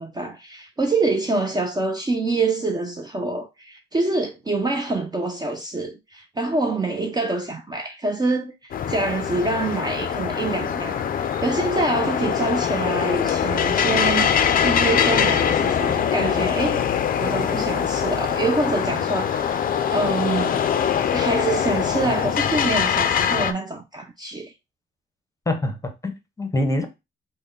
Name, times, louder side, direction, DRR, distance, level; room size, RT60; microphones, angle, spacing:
voice 1, 0.0-16.8 17.2-19.6 19.9-20.6 21.1-24.5, right 2 dB, 20° right, 0.5 m, -26 dB
sound 1, 8.7-23.5, left 8 dB, 45° left, 0.4 m, -23 dB
voice 2, 25.5-26.9, left 1 dB, 15° left, 0.8 m, -25 dB
3.3 x 2.1 x 3.7 m
cardioid pair, 90°, 20 cm